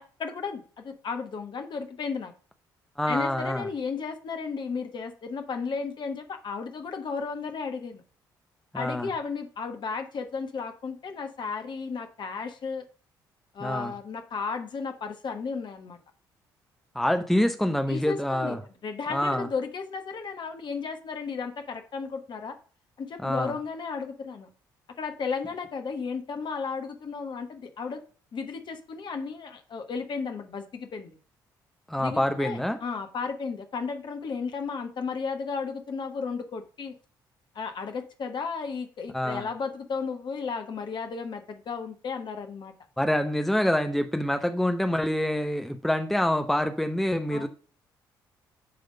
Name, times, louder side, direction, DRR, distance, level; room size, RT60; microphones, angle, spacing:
voice 1, 0.0-2.3 3.1-8.0 8.7-12.8 13.5-16.0 17.9-18.6 18.8-22.6 23.0-24.5 25.0-28.0 28.3-31.2 32.0-37.0 37.5-42.7 47.3-47.5, left 5 dB, 45° left, 1.2 m, -34 dB
voice 2, 3.0-3.7 8.7-9.1 13.6-13.9 16.9-18.6 19.1-19.5 23.2-23.5 31.9-32.8 39.1-39.5 43.0-47.5, left 1 dB, ahead, 0.8 m, -26 dB
9.2 x 3.5 x 5.1 m
figure-of-eight pair, 45°, 11 cm